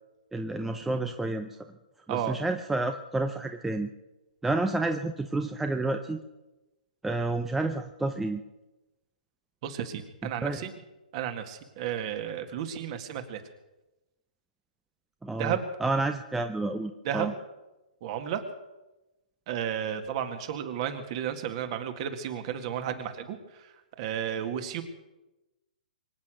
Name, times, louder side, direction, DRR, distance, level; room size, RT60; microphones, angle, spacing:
voice 1, 0.3-1.5 2.1-3.9 4.4-6.2 7.0-8.4 10.4-10.6 15.2-17.3, right 2 dB, 5° right, 6 dB, 0.6 m, -30 dB
voice 2, 9.6-10.7 11.1-13.4 15.4-15.6 17.0-17.3 18.0-18.4 19.5-23.4 24.0-24.8, right 9 dB, 40° right, 7 dB, 2.0 m, -32 dB
24.5 x 8.7 x 6.3 m, 1.0 s
hypercardioid pair, 145°, 5 cm